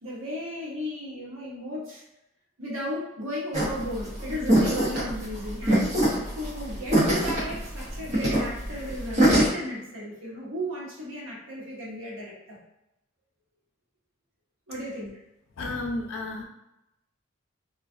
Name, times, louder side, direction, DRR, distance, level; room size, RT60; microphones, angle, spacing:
voice 1, 0.0-2.0 2.6-12.6 14.7-15.2, equal, 85° right, -5 dB, 1.0 m, -35 dB
sound 1, 3.5-9.5, right 1 dB, 35° right, 0.8 m, -23 dB
voice 2, 15.6-16.4, left 2 dB, 85° left, 0 dB, 0.5 m, -32 dB
2.3 x 2.2 x 2.5 m, 0.87 s
head